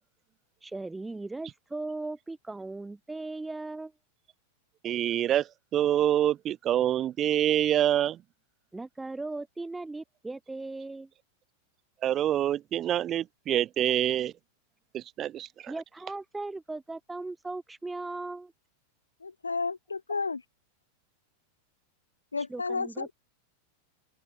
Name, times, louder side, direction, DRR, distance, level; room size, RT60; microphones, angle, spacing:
voice 1, 0.6-3.9 8.7-11.1 15.7-18.5 22.5-23.1, right 2 dB, 10° right, 2.8 m, -38 dB
voice 2, 4.8-5.5 5.7-8.2 12.0-14.3 14.9-15.7, right 11 dB, 30° right, 2.1 m, -26 dB
voice 3, 19.2-20.4 22.3-23.1, left 4 dB, 80° left, 0.7 m, -32 dB
open air
figure-of-eight pair, 90°, 0 cm